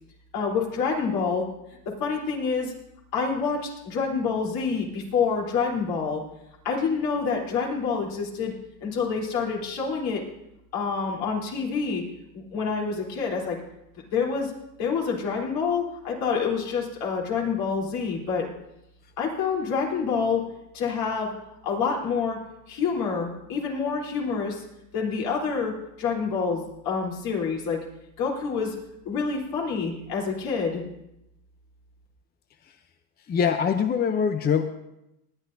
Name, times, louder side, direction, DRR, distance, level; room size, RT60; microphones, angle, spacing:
voice 1, 0.3-1.5 2.0-2.7 3.1-6.2 6.6-8.5 8.8-10.2 10.7-12.0 12.3-13.6 14.1-14.5 14.8-18.5 19.2-20.4 20.7-21.4 21.6-22.4 22.7-24.6 24.9-25.7 26.0-27.8 28.2-28.7 29.1-30.8, left 5 dB, 65° left, -2 dB, 3.6 m, -27 dB
voice 2, 33.3-34.6, left 7 dB, 25° left, 8 dB, 0.6 m, -23 dB
20.0 x 10.0 x 2.7 m, 0.86 s
supercardioid pair, 110°, 39 cm